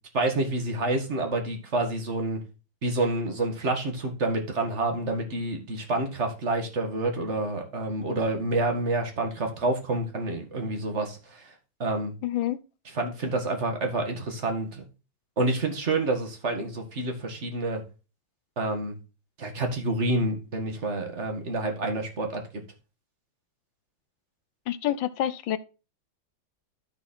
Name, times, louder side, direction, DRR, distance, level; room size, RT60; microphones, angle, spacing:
voice 1, 0.1-2.4 2.8-11.5 11.8-12.1 12.9-14.8 15.4-17.8 18.6-18.9 19.4-22.4, right 2 dB, 35° right, 2.1 m, -28 dB
voice 2, 12.2-12.6 24.7-25.6, left 12 dB, 75° left, 1.4 m, -27 dB
13.0 x 4.5 x 4.3 m
omnidirectional pair, 2.1 m